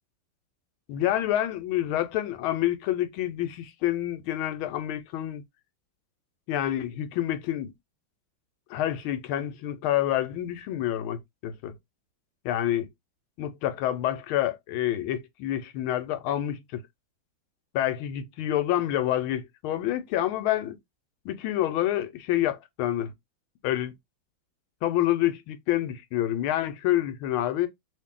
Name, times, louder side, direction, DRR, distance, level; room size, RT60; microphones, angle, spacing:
voice 1, 0.9-5.4 6.5-7.7 8.7-11.7 12.4-12.9 13.4-16.8 17.7-20.8 21.2-23.1 23.6-23.9 24.8-27.7, left 13 dB, 90° left, 1.5 m, -28 dB
3.1 x 2.7 x 3.6 m
omnidirectional pair, 2.2 m